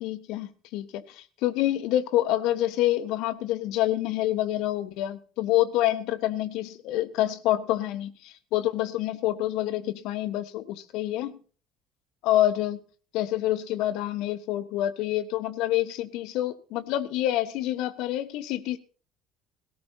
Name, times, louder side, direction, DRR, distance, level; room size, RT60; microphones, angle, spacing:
voice 1, 0.0-11.4 12.2-12.8 13.1-18.8, left 14 dB, 65° left, 12 dB, 1.3 m, -27 dB
18.0 x 17.5 x 2.9 m, 0.40 s
hypercardioid pair, 60°, 0 cm